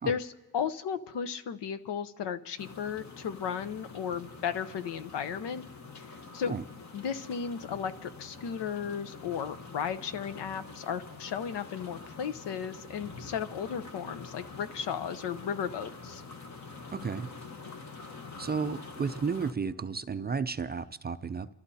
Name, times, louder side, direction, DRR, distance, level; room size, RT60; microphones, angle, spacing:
voice 1, 0.1-5.7 6.0-6.1 6.3-6.5 6.9-16.2, left 7 dB, 80° left, 0.9 m, -35 dB
sound 1, 2.6-19.5, left 4 dB, 45° left, 1.2 m, -46 dB
voice 2, 16.9-17.3 18.4-21.5, right 5 dB, 25° right, 0.4 m, -33 dB
29.0 x 13.5 x 2.8 m
cardioid pair, 110°, 41 cm